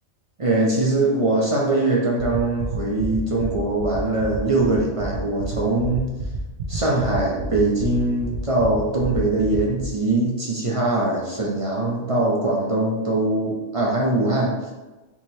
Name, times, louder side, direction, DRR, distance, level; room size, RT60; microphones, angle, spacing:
voice 1, 0.4-6.1 6.7-14.5, right 2 dB, 35° right, -3 dB, 0.5 m, -22 dB
sound 1, 2.2-9.8, right 6 dB, 70° right, 1.2 m, -30 dB
4.3 x 3.5 x 3.1 m, 1.1 s
omnidirectional pair, 1.3 m